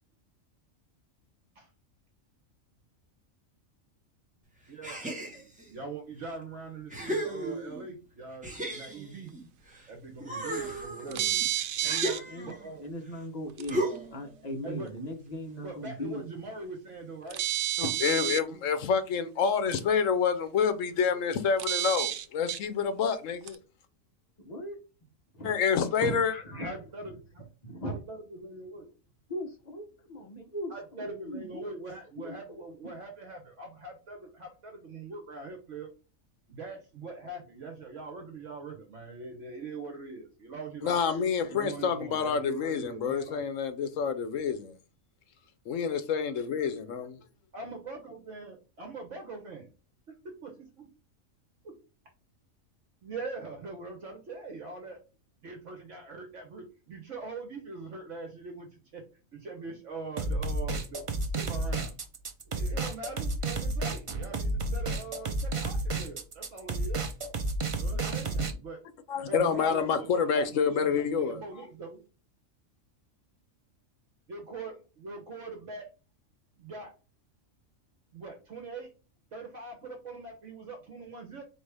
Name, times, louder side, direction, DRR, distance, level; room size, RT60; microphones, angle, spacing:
voice 1, 4.7-9.3 9.9-11.2 12.5-12.8 14.6-14.9 15.6-17.4 18.5-18.6 26.6-27.2 27.8-28.9 30.7-35.9 36.5-41.0 41.5-43.4 47.5-49.7 50.4-50.9 51.6-51.8 53.0-55.0 55.4-59.0 59.3-61.0 61.3-61.9 62.5-67.0 67.8-68.8 69.3-72.0 74.3-75.9 76.6-76.9 78.1-78.9 79.3-81.4, right 3 dB, 65° right, 1.4 m, -42 dB
sound 1, 4.8-5.7 6.3-6.4 6.9-7.9 8.4-9.9 10.2-12.7 13.7-14.3, right 1 dB, 5° right, 1.1 m, -35 dB
voice 2, 11.1-11.4 11.8-13.8 14.1-16.2 17.8-18.0 18.2-18.4 21.1-21.3 24.4-24.8 25.3-25.5 26.0-26.8 27.6-28.0 29.3-31.7 32.2-32.9, equal, 35° left, 1.0 m, -39 dB
sound 2, 11.1-12.2 13.6-13.7 17.3-18.4 19.7-19.8 21.6-22.6 23.5-23.6, right 12 dB, 90° right, 1.0 m, -30 dB
voice 3, 17.8-23.6 25.4-26.3 40.8-44.7 45.7-47.2 69.1-71.4, left 6 dB, 70° left, 1.0 m, -28 dB
sound 3, 60.2-68.5, right 2 dB, 45° right, 0.4 m, -31 dB
4.3 x 3.2 x 3.3 m
omnidirectional pair, 1.4 m